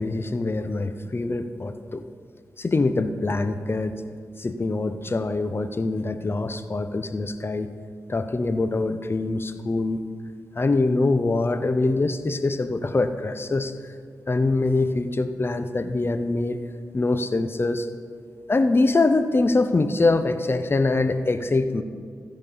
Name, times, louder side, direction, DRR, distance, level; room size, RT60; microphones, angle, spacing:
voice 1, 0.0-2.0 2.6-3.9 4.4-7.7 8.1-10.0 10.5-13.9 14.3-16.6 16.9-17.9 18.5-21.8, left 3 dB, 40° left, 10 dB, 0.7 m, -24 dB
15.5 x 5.2 x 5.4 m, 2.1 s
cardioid pair, 45°, 6 cm